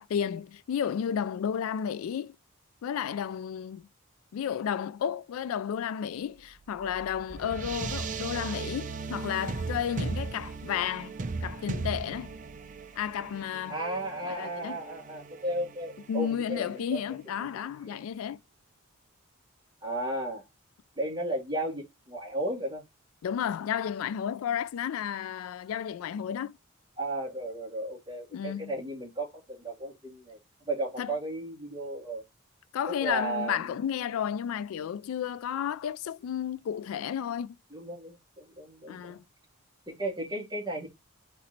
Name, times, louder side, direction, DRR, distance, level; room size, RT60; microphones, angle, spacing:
voice 1, 0.0-2.4 2.8-3.9 4.3-12.3 13.0-13.8 14.2-14.8 16.1-18.4 23.2-26.6 28.3-28.7 31.0-31.1 32.7-37.5 38.9-39.2, left 8 dB, 80° left, 0.3 m, -32 dB
sound 1, 6.4-17.1, right 4 dB, 35° right, 0.5 m, -38 dB
voice 2, 13.7-17.0 17.4-17.5 17.8-18.0 19.8-20.4 21.0-22.8 27.0-30.4 30.7-32.2 33.0-33.7 37.7-39.2 39.9-40.9, right 1 dB, 20° right, 2.0 m, -34 dB
4.3 x 3.1 x 3.9 m
head